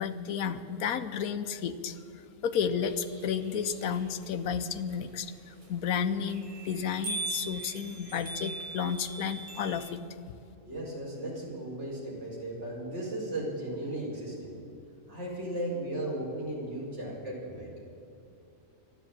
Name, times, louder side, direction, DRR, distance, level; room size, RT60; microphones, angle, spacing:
voice 1, 0.0-2.0 2.4-10.0, left 7 dB, 85° left, 9 dB, 1.2 m, -32 dB
sound 1, 2.9-9.9, right 3 dB, 25° right, 1.6 m, -42 dB
voice 2, 10.7-14.5 15.1-17.7, right 1 dB, 50° right, -5 dB, 4.9 m, -36 dB
13.0 x 11.5 x 9.1 m, 2.7 s
omnidirectional pair, 1.5 m